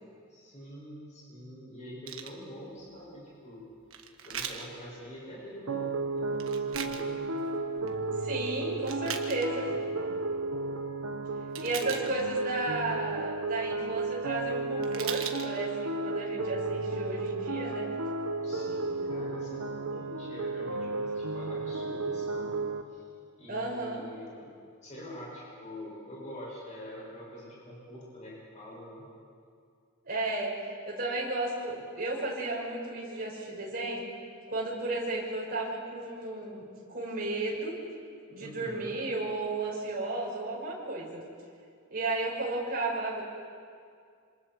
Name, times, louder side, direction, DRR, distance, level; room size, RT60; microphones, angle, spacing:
voice 1, 0.3-3.6 4.2-7.3 8.6-9.8 11.7-12.2 18.4-23.1 23.4-24.5 24.8-29.1 38.4-38.9, equal, 35° left, -6 dB, 7.2 m, -45 dB
sound 1, 2.1-2.3 3.9-4.7 6.3-7.0 7.6-7.9 8.7-9.5 11.6-12.4 14.5-14.6 14.8-15.5 16.1-16.2, right 8 dB, 65° right, 1.4 m, -38 dB
sound 2, 5.7-22.8, right 3 dB, 85° right, 1.2 m, -33 dB
voice 2, 8.2-9.7 11.6-17.9 23.5-24.0 30.0-30.5 30.9-34.0 34.5-37.7 38.3-41.2 41.9-43.2, right 2 dB, 45° right, -4 dB, 5.9 m, -33 dB
27.0 x 26.5 x 4.8 m, 2.2 s
head